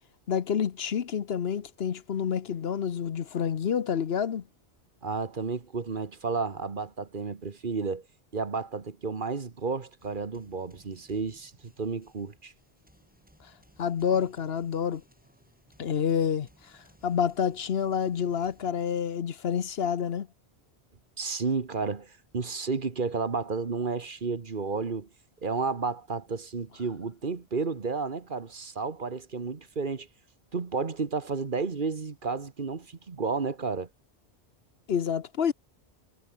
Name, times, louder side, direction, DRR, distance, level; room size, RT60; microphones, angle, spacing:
voice 1, 0.3-4.4 13.8-15.0 15.8-16.5 17.0-20.3 34.9-35.5, left 7 dB, 65° left, 1.1 m, -28 dB
voice 2, 5.0-8.0 8.3-12.5 21.2-25.1 25.4-30.1 30.5-33.9, right 4 dB, 50° right, 1.5 m, -32 dB
sound 1, 10.0-18.7, equal, 10° right, 7.7 m, -62 dB
omnidirectional pair, 1.1 m